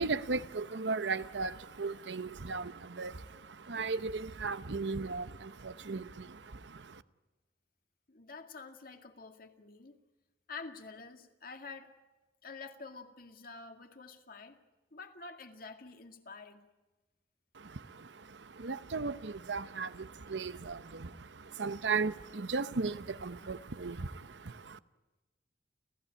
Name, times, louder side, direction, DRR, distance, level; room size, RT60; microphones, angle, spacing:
voice 1, 0.0-7.0 17.5-24.8, right 4 dB, 85° right, 0.9 m, -37 dB
voice 2, 8.1-10.0 10.5-11.9 12.4-14.6 14.9-16.6, left 4 dB, 55° left, 2.1 m, -48 dB
30.0 x 15.0 x 10.0 m
head